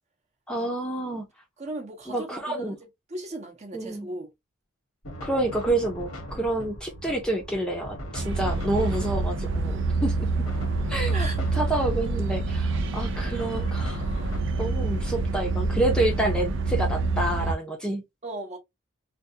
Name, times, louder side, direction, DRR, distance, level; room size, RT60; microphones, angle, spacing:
voice 1, 0.5-1.3 2.1-2.8 3.7-4.1 5.2-10.3 10.9-14.0 14.6-18.0, right 1 dB, 5° left, 0.6 m, -28 dB
voice 2, 1.6-2.7 3.1-4.3 11.1-11.4 18.2-18.6, right 2 dB, 30° right, 0.8 m, -37 dB
sound 1, 5.0-14.4, equal, 85° left, 1.1 m, -40 dB
sound 2, 8.2-17.5, right 3 dB, 60° right, 0.5 m, -27 dB
3.3 x 2.3 x 2.7 m
head